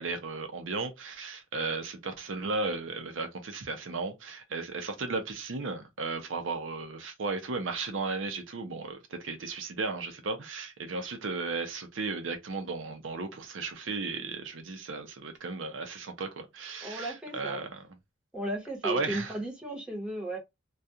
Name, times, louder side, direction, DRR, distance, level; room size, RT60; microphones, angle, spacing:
voice 1, 0.0-17.9 18.8-19.3, right 3 dB, 75° right, 0.6 m, -35 dB
voice 2, 16.8-17.6 18.3-20.4, right 1 dB, 5° right, 1.0 m, -35 dB
2.4 x 2.3 x 2.7 m
head